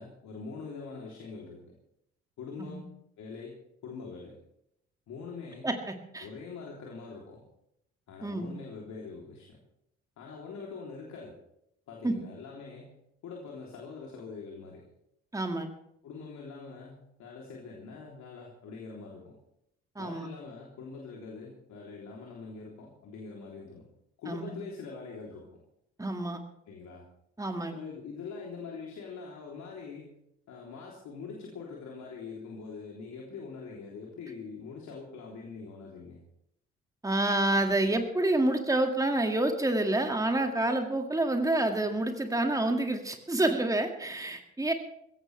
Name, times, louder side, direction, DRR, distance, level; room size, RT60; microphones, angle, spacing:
voice 1, 0.0-1.6 2.4-2.9 3.2-3.5 3.8-4.4 5.1-5.7 6.2-7.4 8.1-9.6 10.2-11.3 11.9-12.9 13.2-14.9 16.0-19.3 20.0-23.8 24.2-25.5 26.7-27.0 27.7-30.1 30.5-36.2, left 4 dB, 50° left, -1 dB, 3.4 m, -43 dB
voice 2, 5.6-6.3 8.2-8.5 12.0-12.2 15.3-15.7 20.0-20.3 24.3-24.6 26.0-26.4 27.4-27.7 37.0-44.7, right 2 dB, 10° right, 5 dB, 2.2 m, -28 dB
22.5 x 16.5 x 3.4 m, 0.78 s
figure-of-eight pair, 45°, 35 cm